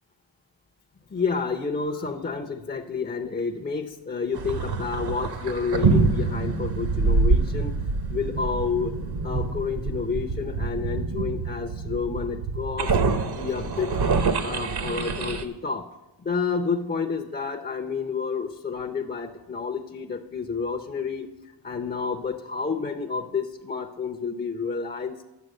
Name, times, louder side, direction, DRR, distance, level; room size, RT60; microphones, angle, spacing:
voice 1, 1.1-7.7 8.1-8.9 9.2-13.9 14.4-15.8 16.2-21.3 21.6-25.2, left 5 dB, 20° left, 4 dB, 0.7 m, -30 dB
sound 1, 4.3-15.4, right 4 dB, 50° right, 1.0 m, -26 dB
9.3 x 6.9 x 6.5 m, 1.0 s
cardioid pair, 90°, 48 cm